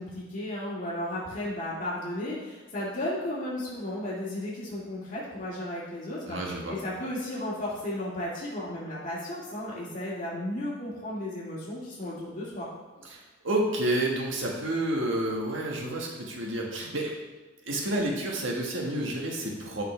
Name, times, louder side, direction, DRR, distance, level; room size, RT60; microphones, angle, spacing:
voice 1, 0.0-12.7, left 1 dB, 40° left, -6 dB, 2.0 m, -34 dB
voice 2, 6.3-6.7 13.1-17.1 17.6-19.8, right 1 dB, 75° right, -1 dB, 1.6 m, -30 dB
11.0 x 5.7 x 3.4 m, 1.3 s
head